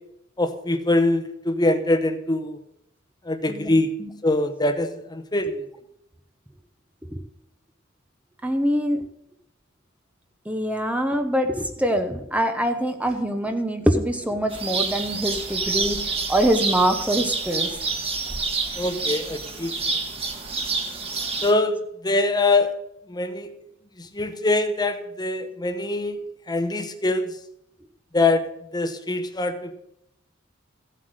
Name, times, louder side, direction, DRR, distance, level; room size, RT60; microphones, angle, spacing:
voice 1, 0.4-2.6 3.2-3.9 4.2-5.7 18.8-19.7 21.4-22.7 23.1-23.5 24.0-26.2 26.5-27.3 28.1-28.4 28.7-29.7, left 2 dB, 20° left, 9 dB, 0.9 m, -23 dB
voice 2, 3.5-4.1 7.1-7.2 8.4-9.0 10.5-16.0 16.3-17.8, equal, 5° right, 6 dB, 0.7 m, -24 dB
sound 1, 14.5-21.5, right 4 dB, 30° right, 1.5 m, -28 dB
14.5 x 7.6 x 6.5 m, 0.80 s
head